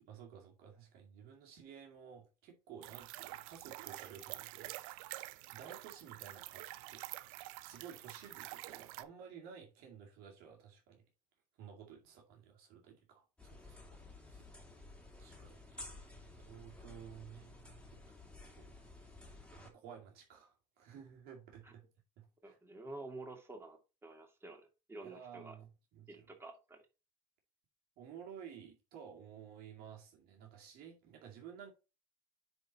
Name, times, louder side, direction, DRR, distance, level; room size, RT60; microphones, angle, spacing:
voice 1, 0.0-4.7 5.2-7.0 7.6-11.0 11.6-14.0 14.3-14.4 15.2-17.8 18.6-18.8 19.5-21.8 22.2-22.6 25.0-26.3 28.0-31.7, right 8 dB, 65° right, 2.3 m, -54 dB
sound 1, 2.8-9.0, right 18 dB, 80° right, 0.6 m, -48 dB
sound 2, 13.4-19.7, left 2 dB, 5° left, 2.4 m, -54 dB
voice 2, 22.4-25.6 26.1-26.8, right 2 dB, 15° right, 2.4 m, -50 dB
9.5 x 4.0 x 4.2 m
supercardioid pair, 110°, 17 cm